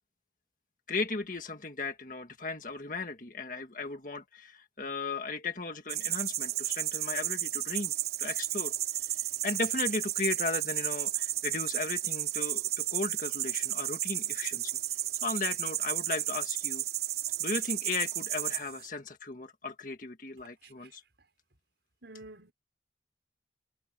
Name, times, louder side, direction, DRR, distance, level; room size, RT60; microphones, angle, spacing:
voice 1, 0.9-7.9 8.2-8.7 9.4-14.7 15.2-16.8 17.4-21.0, left 3 dB, 45° left, 1.7 m, -36 dB
sound 1, 5.9-18.9, right 12 dB, 55° right, 3.6 m, -33 dB
voice 2, 22.0-22.5, right 2 dB, 75° right, 5.6 m, -48 dB
head